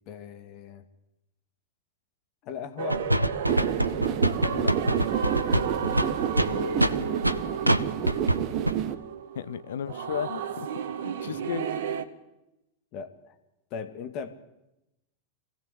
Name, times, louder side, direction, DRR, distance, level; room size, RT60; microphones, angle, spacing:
voice 1, 0.1-0.8 2.4-3.0 5.7-6.2 11.3-11.4 12.9-13.4 13.7-14.4, left 7 dB, 40° left, 8 dB, 2.0 m, -39 dB
sound 1, 2.8-12.0, right 7 dB, 55° right, 1.5 m, -33 dB
sound 2, 2.9-7.4 7.7-8.4 8.7-8.8, right 1 dB, 85° right, 0.8 m, -24 dB
sound 3, 3.5-8.9, right 10 dB, 40° right, 1.4 m, -30 dB
voice 2, 9.3-10.7 11.0-11.8, left 8 dB, 60° left, 14 dB, 0.9 m, -34 dB
24.0 x 16.5 x 8.1 m, 0.92 s
figure-of-eight pair, 90°, 0 cm